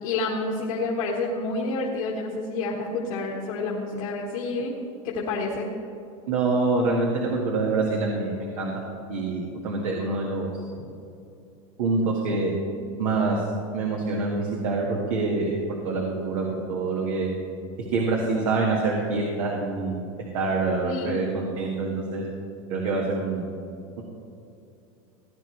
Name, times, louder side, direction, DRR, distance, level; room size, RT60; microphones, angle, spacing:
voice 1, 0.0-4.8 5.0-5.7 20.8-21.3, left 3 dB, 75° left, -4 dB, 1.7 m, -29 dB
voice 2, 6.3-8.7 9.1-10.7 11.8-12.5 13.0-13.5 13.7-15.6 15.8-17.3 17.9-20.1 20.3-22.2 22.7-23.5, right 3 dB, 80° right, -2 dB, 1.8 m, -26 dB
16.5 x 9.9 x 3.2 m, 2.7 s
supercardioid pair, 125°, 17 cm